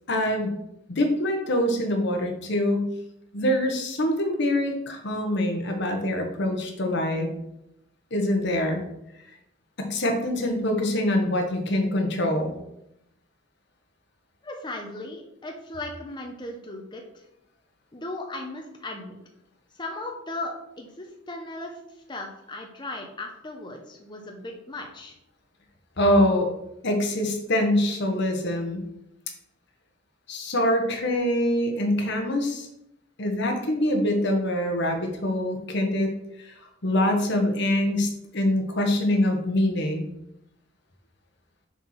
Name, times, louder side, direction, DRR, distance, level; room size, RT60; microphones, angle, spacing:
voice 1, 0.1-0.5 0.9-2.9 3.3-7.3 8.1-8.8 9.8-12.6 26.0-26.5 26.8-28.8 30.3-32.7 33.2-36.1 36.4-36.5 36.8-40.1, left 1 dB, 60° left, 3 dB, 1.4 m, -24 dB
voice 2, 14.4-17.2 17.9-19.2 19.7-21.8 22.1-25.2, left 2 dB, 25° left, 2 dB, 0.8 m, -37 dB
7.0 x 4.4 x 5.7 m, 0.82 s
head